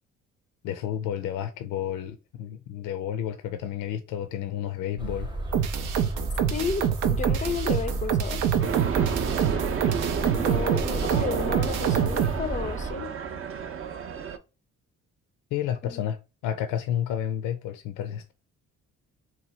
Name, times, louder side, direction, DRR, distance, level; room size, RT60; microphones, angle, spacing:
voice 1, 0.6-5.3 15.5-16.2 16.4-18.3, left 10 dB, 85° left, 0.5 m, -31 dB
sound 1, 5.0-12.9, right 2 dB, 15° right, 0.8 m, -33 dB
sound 2, 5.5-12.4, right 9 dB, 85° right, 0.6 m, -26 dB
voice 2, 6.5-8.5 10.3-13.1 15.8-16.0, left 5 dB, 25° left, 0.4 m, -32 dB
sound 3, 8.6-14.4, right 6 dB, 45° right, 0.6 m, -31 dB
2.8 x 2.3 x 4.1 m
cardioid pair, 90°, 30 cm